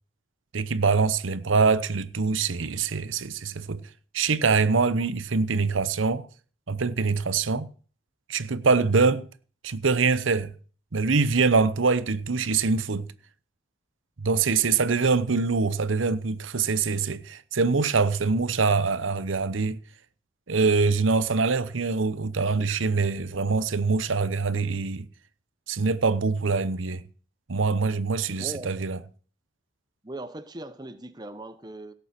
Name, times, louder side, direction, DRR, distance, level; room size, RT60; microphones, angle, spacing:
voice 1, 0.5-3.9 4.1-6.3 6.7-7.7 8.3-9.3 9.6-10.5 10.9-13.1 14.2-19.8 20.5-25.1 25.7-27.0 27.5-29.0, right 4 dB, 90° right, 0.8 m, -24 dB
voice 2, 28.2-28.7 30.0-31.9, right 1 dB, 20° right, 0.9 m, -39 dB
17.0 x 7.0 x 6.0 m
head